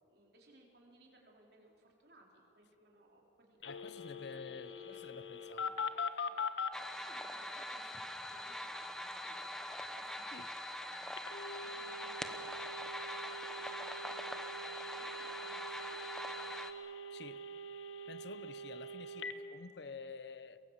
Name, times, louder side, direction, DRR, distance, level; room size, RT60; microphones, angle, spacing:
voice 1, 0.0-3.6 4.1-6.3 7.1-9.5 9.9-10.9 11.1-11.2 11.6-12.8 13.1-16.5, right 2 dB, 55° right, -1 dB, 4.2 m, -62 dB
Telephone, 3.6-6.7 11.2-19.3, left 2 dB, 90° left, 1.2 m, -43 dB
voice 2, 3.6-5.7 10.3-10.5 17.1-17.4 18.1-20.6, left 4 dB, 65° left, 14 dB, 0.8 m, -50 dB
sound 1, 6.7-16.7, left 1 dB, 5° left, 1.0 m, -43 dB
23.5 x 23.0 x 7.5 m, 2.7 s
head